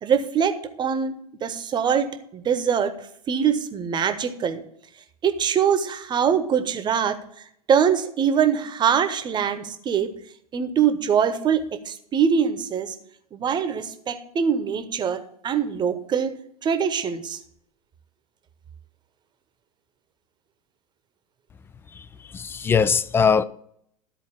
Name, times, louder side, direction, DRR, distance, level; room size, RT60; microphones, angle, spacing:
voice 1, 0.0-2.1 2.3-2.9 3.3-4.6 5.2-7.2 7.7-10.1 10.5-12.9 13.3-16.3 16.6-17.4, right 7 dB, 25° right, 1.0 m, -23 dB
voice 2, 21.9-23.4, left 6 dB, 10° left, 0.3 m, -21 dB
13.0 x 4.5 x 8.3 m
figure-of-eight pair, 85°, 19 cm